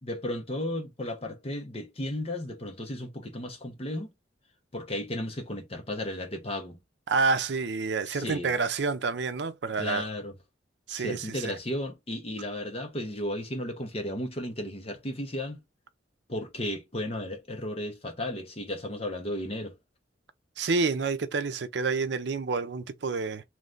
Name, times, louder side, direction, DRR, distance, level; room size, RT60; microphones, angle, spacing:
voice 1, 0.0-4.1 4.7-6.8 8.1-8.6 9.8-10.3 10.9-15.6 16.3-19.7, left 1 dB, 35° left, 1.0 m, -34 dB
voice 2, 7.1-10.0 10.9-11.4 20.6-23.4, right 4 dB, 70° right, 0.5 m, -28 dB
3.2 x 3.2 x 3.8 m
head